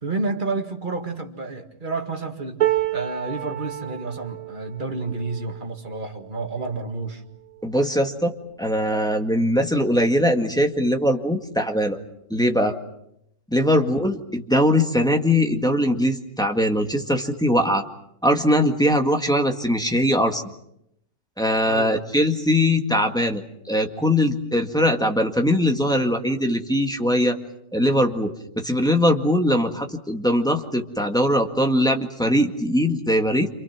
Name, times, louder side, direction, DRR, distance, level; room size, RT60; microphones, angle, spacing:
voice 1, 0.0-2.6 2.9-7.2 13.7-13.9 21.6-22.1, right 3 dB, 35° right, 3 dB, 2.3 m, -30 dB
sound 1, 2.6-8.8 9.3-9.5 9.8-10.6 11.6-11.7, right 14 dB, 85° right, 2.3 m, -31 dB
voice 2, 7.6-8.3 8.6-12.0 12.3-12.7 13.5-17.8 18.2-20.4 21.4-23.4 23.7-27.4 27.7-28.3 28.6-33.5, equal, 5° left, 3 dB, 1.8 m, -21 dB
28.5 x 27.0 x 6.1 m, 0.78 s
omnidirectional pair, 1.4 m